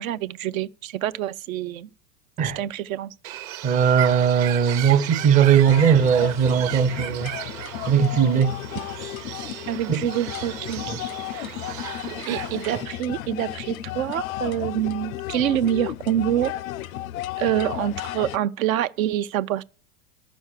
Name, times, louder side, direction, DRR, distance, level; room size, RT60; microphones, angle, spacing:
voice 1, 0.0-1.9 2.6-3.1 9.7-10.8 12.3-16.5 17.4-19.6, right 11 dB, 75° right, 0.7 m, -26 dB
Bird, 3.2-12.8, right 13 dB, 45° right, 0.8 m, -36 dB
voice 2, 3.6-7.3 7.9-8.6 9.9-10.0 10.9-11.0 12.7-12.8, right 7 dB, 20° right, 0.5 m, -19 dB
sound 1, 5.6-18.4, left 14 dB, 75° left, 0.6 m, -34 dB
12.0 x 6.3 x 8.2 m
hypercardioid pair, 105°, 42 cm